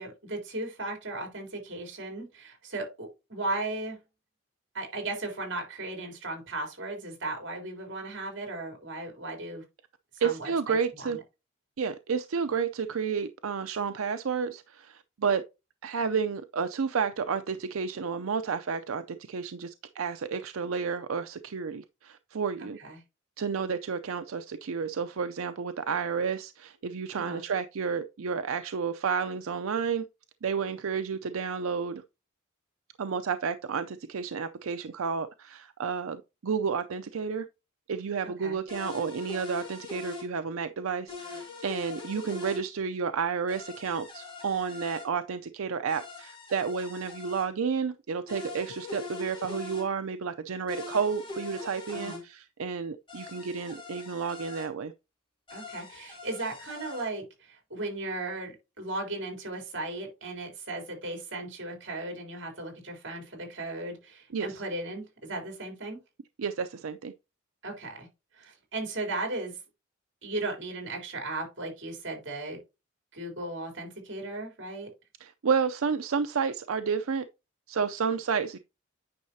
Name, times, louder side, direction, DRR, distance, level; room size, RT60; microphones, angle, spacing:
voice 1, 0.0-4.0 4.7-9.6 10.1-11.2 22.6-23.0 27.1-27.4 38.2-38.6 51.9-52.2 55.5-66.0 67.6-68.1 68.3-69.6 70.2-72.6 73.1-74.9, right 2 dB, 60° right, 3.6 m, -36 dB
voice 2, 10.2-11.2 11.8-15.4 15.8-22.8 23.4-30.0 30.4-32.0 33.0-37.5 37.9-54.9 64.3-64.6 66.4-67.1 75.2-77.2 77.7-78.6, right 6 dB, 85° right, 0.5 m, -31 dB
sound 1, 38.7-40.3 41.1-42.6 43.5-45.1 45.9-47.5 48.3-49.9 50.7-52.2 53.1-54.7 55.5-57.1, left 4 dB, 25° left, 2.6 m, -42 dB
9.5 x 5.6 x 2.7 m
head